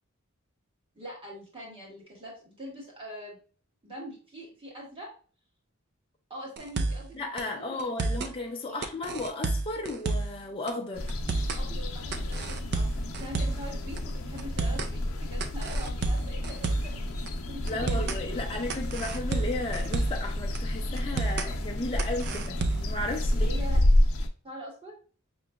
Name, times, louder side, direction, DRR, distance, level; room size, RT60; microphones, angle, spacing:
voice 1, 0.9-3.4 3.8-5.1 6.3-7.9 8.7-8.8 11.6-17.1 17.5-18.1 23.3-23.8 24.4-24.9, equal, 25° right, 1.5 m, -43 dB
sound 1, 6.6-7.1 7.4-7.5 7.8-8.3 8.8-10.4 10.7-10.8 11.1-11.6 12.1-13.7 14.0-14.1 14.4-14.9 15.4-17.0 17.3-17.4 17.7-18.2 18.7-20.3 20.5-20.6 21.0-21.5 22.0-23.0, right 3 dB, 50° right, 0.4 m, -30 dB
voice 2, 7.1-11.1 17.7-23.5, left 2 dB, 25° left, 0.4 m, -34 dB
sound 2, 10.9-24.3, left 1 dB, 80° left, 0.6 m, -30 dB
5.2 x 3.0 x 2.2 m
head